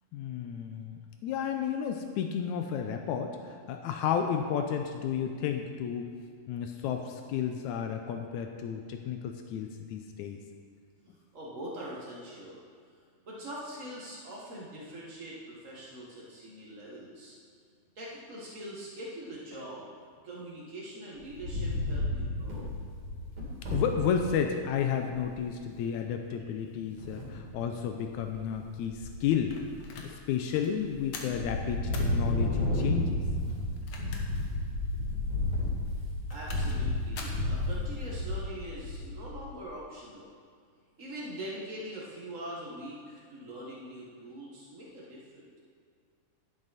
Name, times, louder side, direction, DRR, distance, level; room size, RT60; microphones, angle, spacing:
voice 1, 0.1-6.1 6.5-10.4 23.7-29.5 30.0-33.2, left 8 dB, 90° left, 5 dB, 1.7 m, -32 dB
voice 2, 11.3-12.6 13.3-17.3 18.0-19.8 20.2-22.7 36.3-40.3 41.0-45.6, right 1 dB, 70° right, -5 dB, 0.7 m, -43 dB
Wind, 21.2-24.3 24.8-24.9 25.1-25.5 27.0-27.6 28.1-28.6 28.9-30.1 30.5-31.0 31.3-39.5, left 1 dB, 50° right, 3.6 m, -32 dB
sound 1, 29.5-30.1 30.5-30.7 31.1-31.4 31.9-32.1 33.7-34.4 34.8-34.9 36.1-36.8 37.1-37.4, left 4 dB, 65° left, 1.6 m, -43 dB
11.0 x 10.5 x 4.1 m, 2.1 s
omnidirectional pair, 4.0 m